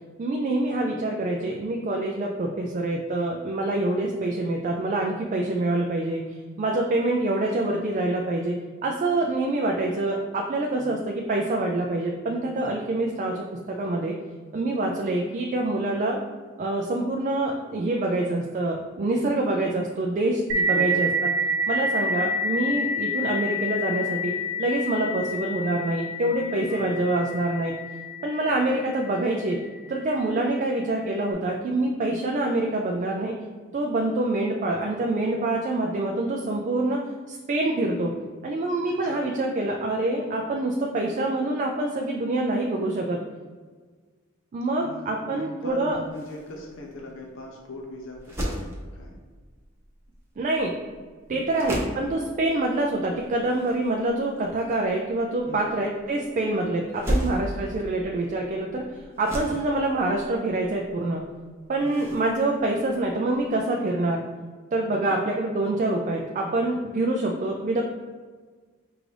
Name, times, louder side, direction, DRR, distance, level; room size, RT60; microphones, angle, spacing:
voice 1, 0.2-6.3 6.6-8.5 8.8-13.4 13.8-14.1 14.5-16.2 16.6-21.3 21.7-27.7 28.2-29.6 29.9-33.3 33.7-37.0 37.3-38.1 38.4-43.2 44.5-46.0 50.4-50.7 51.3-58.8 59.2-61.2 61.7-64.2 64.7-67.8, right 2 dB, 40° right, 0 dB, 0.3 m, -26 dB
sound 1, 20.5-29.7, equal, 80° right, 0.9 m, -28 dB
voice 2, 20.7-21.1 26.6-27.0 28.5-28.6 38.9-39.2 44.7-48.7 48.9-49.1 51.3-51.6 55.4-55.8 59.5-59.8 61.8-62.1 64.9-65.2, left 1 dB, 65° left, -1 dB, 0.5 m, -40 dB
sound 2, 45.6-63.6, equal, 15° right, 0.7 m, -37 dB
4.7 x 2.5 x 3.2 m, 1.5 s
head